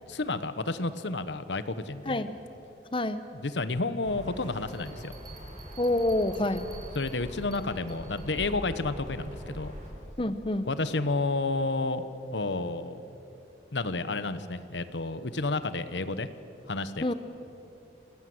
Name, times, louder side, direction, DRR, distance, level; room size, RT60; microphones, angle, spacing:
voice 1, 0.1-2.2 3.4-5.1 6.9-9.7 10.6-12.0 12.3-13.0 13.7-16.3 16.7-17.1, left 3 dB, 90° left, 13 dB, 1.1 m, -31 dB
voice 2, 2.1-2.4 2.9-3.2 5.8-6.7 10.2-10.7 17.0-17.1, left 1 dB, 30° left, 11 dB, 0.9 m, -27 dB
sound 1, 4.0-9.9, equal, 40° right, 4.7 m, -43 dB
Bell, 4.7-8.3, right 6 dB, 20° right, 3.3 m, -53 dB
27.0 x 19.0 x 7.9 m, 2.7 s
head